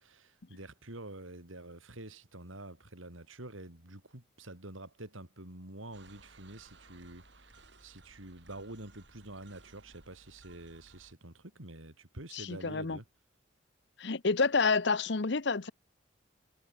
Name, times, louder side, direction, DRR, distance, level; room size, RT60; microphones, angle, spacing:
voice 1, 0.0-13.0, right 1 dB, 85° right, 4.2 m, -47 dB
sound 1, 5.9-11.1, right 3 dB, 60° right, 6.2 m, -59 dB
voice 2, 12.3-13.0 14.0-15.7, left 4 dB, 60° left, 0.8 m, -29 dB
head